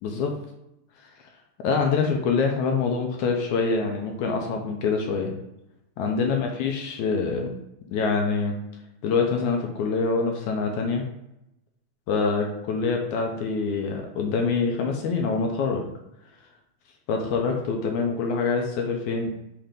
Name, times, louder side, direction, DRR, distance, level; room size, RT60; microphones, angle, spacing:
voice 1, 0.0-0.3 1.6-5.3 6.0-7.5 7.9-8.5 9.0-11.1 12.1-15.8 17.1-19.3, left 4 dB, 75° left, 2 dB, 2.0 m, -25 dB
5.8 x 3.4 x 5.1 m, 0.84 s
omnidirectional pair, 3.7 m